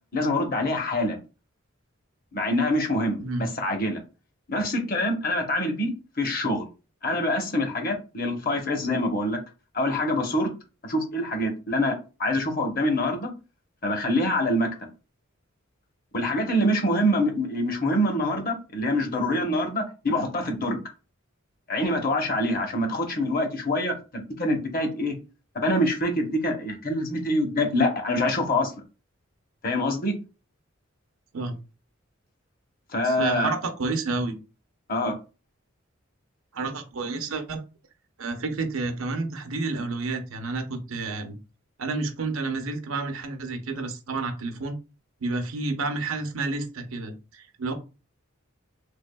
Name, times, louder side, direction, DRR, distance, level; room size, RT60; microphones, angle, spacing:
voice 1, 0.1-1.2 2.3-4.0 4.5-6.6 7.0-9.4 9.7-10.5 10.8-11.9 12.2-13.3 13.8-14.7 16.1-20.8 21.7-25.1 25.6-28.7 29.6-30.1 32.9-33.5 34.9-35.2, left 1 dB, 45° left, 3 dB, 0.9 m, -25 dB
voice 2, 33.0-34.3 36.5-37.6 38.2-41.3 41.8-44.8 45.2-47.7, right 3 dB, 80° right, 6 dB, 0.7 m, -30 dB
3.5 x 3.4 x 2.2 m, 0.31 s
head